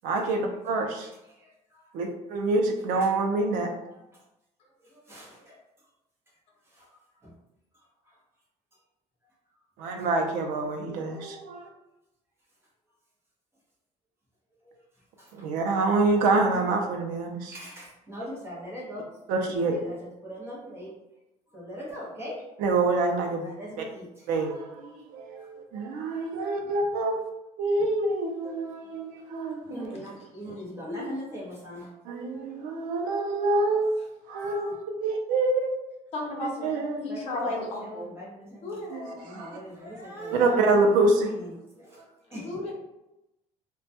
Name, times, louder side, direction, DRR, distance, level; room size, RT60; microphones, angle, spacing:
voice 1, 0.0-1.1 1.9-3.7 9.8-11.7 15.3-17.6 19.3-19.8 22.6-23.5 24.3-27.2 27.6-30.0 32.1-34.0 34.3-35.7 36.6-37.0 38.9-39.5 40.3-41.3, right 3 dB, 85° right, 3 dB, 0.4 m, -26 dB
voice 2, 1.4-2.0 3.8-4.0 4.8-5.6 6.7-7.3 8.1-8.2 10.0-10.1 14.6-14.8 15.2-15.5 17.5-19.1 19.7-20.9 21.5-22.7 23.4-24.3 25.4-25.5 26.6-26.9 29.6-31.9 32.3-32.5 33.1-33.2 34.3-34.4 37.1-38.8 39.2-40.8 41.2-42.5, equal, 20° right, -5 dB, 0.8 m, -41 dB
voice 3, 36.1-38.1 38.6-39.2 42.3-42.7, left 2 dB, 50° left, -1 dB, 0.7 m, -34 dB
2.2 x 2.2 x 2.6 m, 0.92 s
cardioid pair, 160°, 13 cm